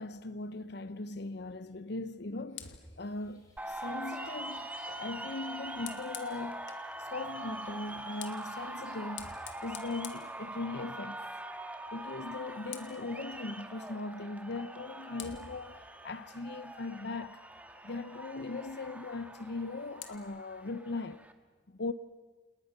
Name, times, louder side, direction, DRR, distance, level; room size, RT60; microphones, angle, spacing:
voice 1, 0.0-6.7 7.0-9.3 9.6-11.2 11.9-17.4 17.8-21.2 21.7-21.9, left 3 dB, 60° left, 0.8 m, -39 dB
Fire, 2.5-6.9 7.8-11.1 11.4-11.7 12.0-13.1 14.5-14.6 15.2-17.5 19.4-20.2, left 9 dB, 85° left, 2.3 m, -51 dB
sound 1, 3.0-8.9, left 2 dB, 20° left, 5.2 m, -64 dB
sound 2, 3.6-21.3, right 1 dB, 10° right, 1.8 m, -43 dB
30.0 x 28.5 x 6.7 m
head